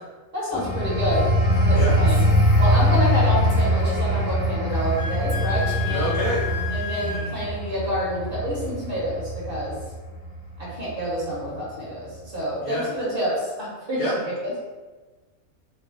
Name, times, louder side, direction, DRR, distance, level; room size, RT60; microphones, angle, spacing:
voice 1, 0.3-2.2 2.6-6.1 6.7-9.7 10.6-14.5, equal, 40° right, -8 dB, 1.7 m, -28 dB
sound 1, 0.5-10.9 11.3-11.6, equal, 10° left, 0.9 m, -22 dB
Female speech woman speaking, 1.1-4.4 5.3-7.5, equal, 15° right, 1.2 m, -39 dB
Wind instrument woodwind instrument, 4.7-7.3, left 7 dB, 55° left, 0.4 m, -33 dB
voice 2, 5.8-6.4 12.6-12.9 14.0-14.1, equal, 80° left, -8 dB, 1.8 m, -27 dB
4.4 x 2.2 x 3.5 m, 1.3 s
omnidirectional pair, 1.4 m